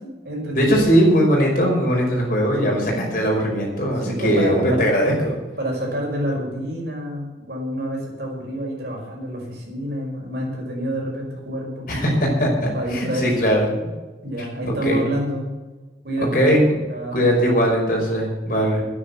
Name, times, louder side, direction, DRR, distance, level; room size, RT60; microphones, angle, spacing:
voice 1, 0.0-0.9 2.6-2.9 4.0-4.9 5.6-12.3 12.7-13.3 14.2-15.6 16.0-16.6 16.9-17.7, right 1 dB, 60° right, -1 dB, 5.6 m, -28 dB
voice 2, 0.5-5.1 11.9-13.7 14.6-15.0 16.3-16.6 17.1-18.8, equal, 50° left, -1 dB, 5.4 m, -19 dB
10.5 x 10.0 x 9.8 m, 1.2 s
head